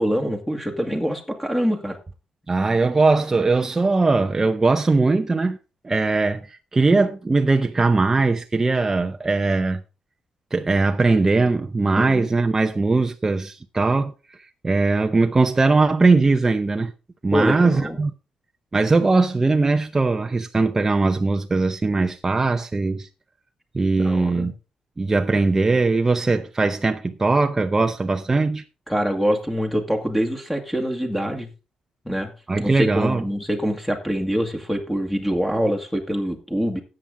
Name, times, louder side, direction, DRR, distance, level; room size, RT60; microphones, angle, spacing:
voice 1, 0.0-2.0 11.9-12.3 17.3-18.0 24.0-24.5 28.9-31.5 32.1-32.3 32.6-36.8, equal, 5° left, 2.0 m, -24 dB
voice 2, 2.5-5.6 5.8-9.8 10.5-14.1 14.6-16.9 17.2-18.1 18.7-23.1 23.7-24.5 25.0-28.6 32.5-33.2, right 3 dB, 20° right, 0.7 m, -20 dB
13.5 x 8.8 x 3.7 m
cardioid pair, 130°, 2 cm